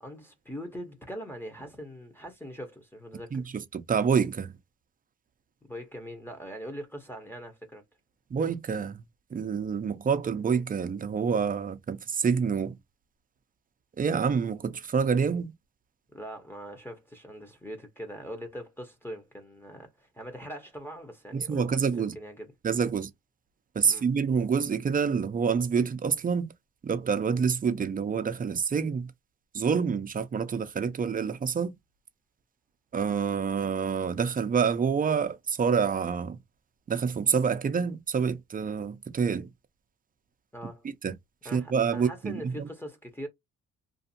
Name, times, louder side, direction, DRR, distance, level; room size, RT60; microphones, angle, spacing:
voice 1, 0.0-3.5 5.7-7.8 16.1-22.5 23.9-24.1 40.5-40.9 41.4-43.3, equal, 5° left, 0.8 m, -42 dB
voice 2, 3.3-4.6 8.3-9.0 9.3-12.8 14.0-15.5 21.3-22.1 22.6-23.1 23.8-26.5 26.8-29.1 29.5-31.7 32.9-36.4 36.9-39.5 41.0-41.1 41.5-42.7, right 6 dB, 30° right, 0.5 m, -27 dB
2.5 x 2.4 x 2.7 m
cardioid pair, 90°, 30 cm